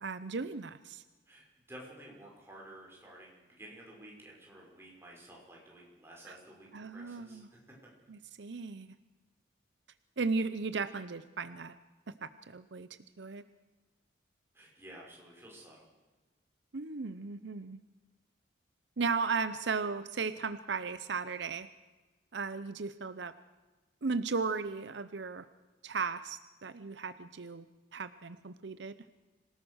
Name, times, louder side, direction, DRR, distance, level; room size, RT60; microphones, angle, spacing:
voice 1, 0.0-1.0 6.3-6.4 6.7-7.5 8.1-8.9 10.2-11.8 12.2-12.9 13.2-13.4 16.7-17.8 19.0-21.7 22.3-23.3 24.0-25.5 25.8-27.7 27.9-28.9, right 4 dB, 70° right, 13 dB, 0.7 m, -36 dB
voice 2, 1.3-7.6 14.5-15.9, right 1 dB, 15° right, -2 dB, 5.8 m, -52 dB
26.0 x 18.0 x 6.4 m, 1.2 s
head